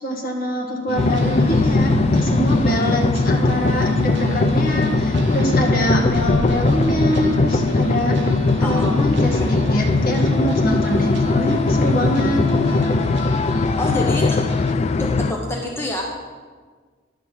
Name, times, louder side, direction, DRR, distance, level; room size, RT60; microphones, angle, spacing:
voice 1, 0.0-8.2 8.6-12.4, equal, 50° left, 0 dB, 1.5 m, -24 dB
sound 1, 0.9-14.7, right 3 dB, 60° right, 0.6 m, -31 dB
sound 2, 1.0-15.3, left 3 dB, 35° left, 0.3 m, -19 dB
voice 2, 8.6-9.5 13.8-14.4 15.0-16.0, left 1 dB, 15° left, -1 dB, 0.7 m, -27 dB
11.0 x 4.6 x 7.0 m, 1.5 s
head